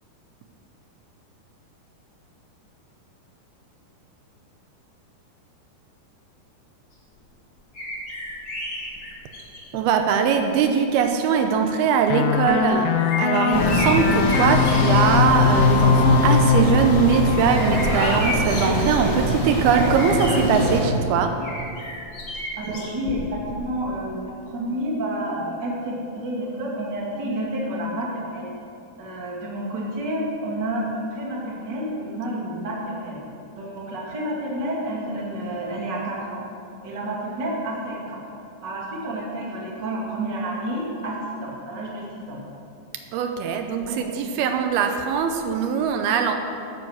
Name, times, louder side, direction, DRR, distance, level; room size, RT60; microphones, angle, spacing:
sound 1, 7.7-9.8 10.7-10.8 12.3-15.2 15.6-16.0 16.4-20.8 21.4-23.6 23.8-23.9, equal, 40° left, 1.1 m, -32 dB
voice 1, 9.7-12.9 13.2-21.3 43.1-46.3, right 6 dB, 85° right, 5 dB, 2.7 m, -21 dB
sound 2, 12.1-18.2, left 10 dB, 90° left, 1.9 m, -23 dB
sound 3, 13.5-20.8, left 1 dB, 20° left, 1.0 m, -22 dB
voice 2, 22.6-28.5 29.0-33.2 33.5-36.4 36.8-38.2 38.6-42.4 43.9-44.2, right 1 dB, 35° right, -3 dB, 2.3 m, -30 dB
14.0 x 9.5 x 6.4 m, 2.7 s
omnidirectional pair, 4.5 m